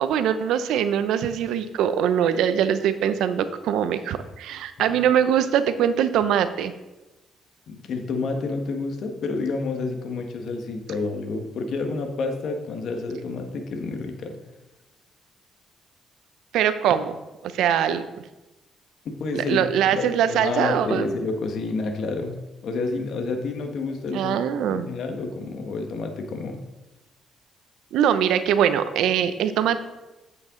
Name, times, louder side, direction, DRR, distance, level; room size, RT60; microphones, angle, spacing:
voice 1, 0.0-6.7 16.5-17.2 17.4-18.0 19.3-21.1 24.1-24.9 27.9-29.8, right 9 dB, 85° right, 12 dB, 0.6 m, -22 dB
voice 2, 7.7-14.4 19.0-19.6 19.9-24.4 24.7-26.6, left 3 dB, 70° left, 4 dB, 1.4 m, -29 dB
8.9 x 7.7 x 3.8 m, 1.0 s
cardioid pair, 90°, 0 cm